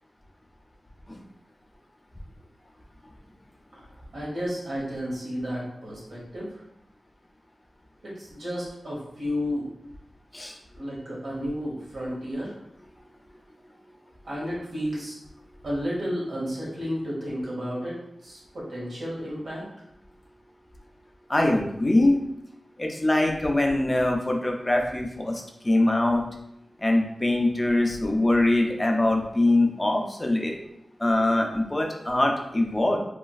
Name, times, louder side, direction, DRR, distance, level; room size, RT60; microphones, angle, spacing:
voice 1, 4.1-6.5 8.0-9.7 10.8-12.5 14.2-15.2 15.6-17.9 18.2-19.6, equal, 85° right, -6 dB, 1.1 m, -32 dB
voice 2, 21.3-22.2 22.8-26.2 26.8-30.6 31.0-33.0, left 1 dB, 20° left, 1 dB, 0.4 m, -23 dB
3.0 x 2.4 x 2.3 m, 0.79 s
wide cardioid pair, 90°, 0 cm